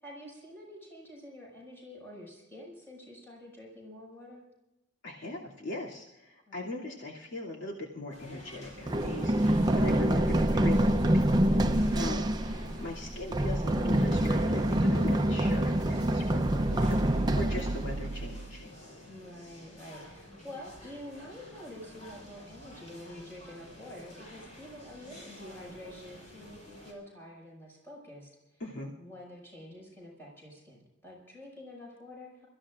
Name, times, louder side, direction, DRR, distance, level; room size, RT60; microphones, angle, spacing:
voice 1, 0.0-4.4 6.5-6.8 11.9-12.4 19.1-28.3 29.0-32.5, left 1 dB, 10° left, -4 dB, 6.0 m, -47 dB
voice 2, 5.0-11.3 11.6-12.2 12.7-18.7 28.6-28.9, left 2 dB, 70° left, -3 dB, 2.7 m, -40 dB
sound 1, 8.1-26.9, equal, 40° left, 6.7 m, -50 dB
Run, 8.9-18.6, right 1 dB, 20° right, 0.6 m, -26 dB
29.0 x 15.0 x 2.5 m, 0.96 s
head